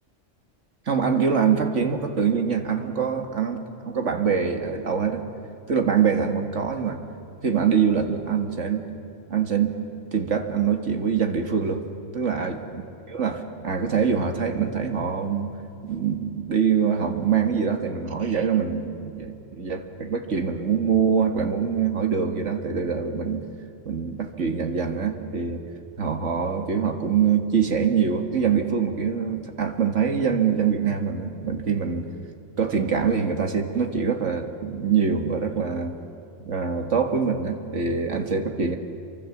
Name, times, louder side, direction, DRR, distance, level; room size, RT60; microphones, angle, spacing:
voice 1, 0.9-5.2 5.7-7.0 7.4-8.9 9.3-9.8 10.1-11.8 12.1-12.8 13.1-15.5 15.8-23.5 23.9-25.6 26.0-32.1 32.6-36.0 36.5-38.8, right 6 dB, 70° right, 4 dB, 2.1 m, -24 dB
28.0 x 24.5 x 7.2 m, 2.6 s
omnidirectional pair, 1.3 m